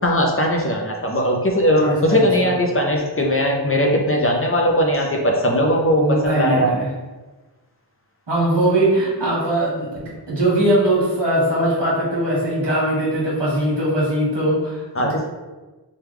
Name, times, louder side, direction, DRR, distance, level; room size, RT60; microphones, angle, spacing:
voice 1, 0.0-6.7 15.0-15.2, equal, 30° left, 0 dB, 0.5 m, -19 dB
voice 2, 1.7-2.5 6.0-6.9 8.3-15.3, right 1 dB, 75° right, -6 dB, 1.4 m, -21 dB
3.1 x 2.3 x 3.3 m, 1.2 s
wide cardioid pair, 65°, 43 cm